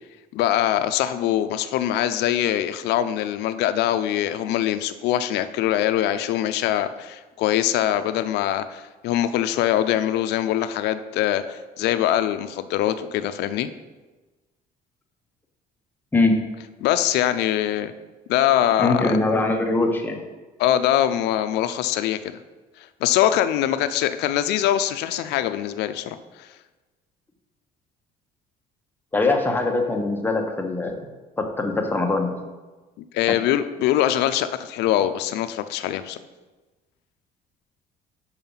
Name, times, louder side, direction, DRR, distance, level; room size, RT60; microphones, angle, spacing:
voice 1, 0.3-13.7 16.8-17.9 18.3-19.0 20.6-22.2 23.0-26.5 33.1-36.2, left 11 dB, 80° left, 10 dB, 0.4 m, -23 dB
voice 2, 18.8-20.2 29.1-31.0 31.4-32.4 33.3-33.4, left 2 dB, 10° left, 2 dB, 1.0 m, -22 dB
5.6 x 4.8 x 5.5 m, 1.2 s
cardioid pair, 110°, 17 cm